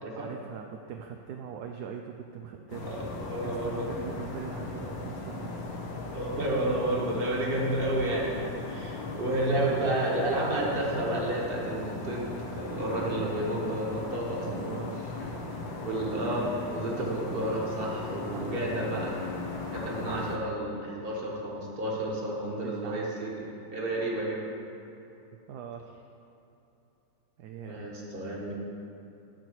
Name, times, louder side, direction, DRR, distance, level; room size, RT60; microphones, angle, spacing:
voice 1, 0.1-3.0 3.4-5.7 9.5-9.8 13.1-15.3 18.3-19.0 20.0-20.4 22.6-23.1 25.5-26.0 27.4-27.9, right 7 dB, 70° right, 4 dB, 1.0 m, -41 dB
sound 1, 2.7-20.4, left 3 dB, 90° left, 1.9 m, -37 dB
voice 2, 2.8-3.9 6.1-8.4 8.7-12.3 12.5-14.7 15.8-19.1 19.7-24.5 27.6-28.5, right 1 dB, 30° right, -3 dB, 1.6 m, -31 dB
10.5 x 4.5 x 7.9 m, 2.9 s
omnidirectional pair, 2.0 m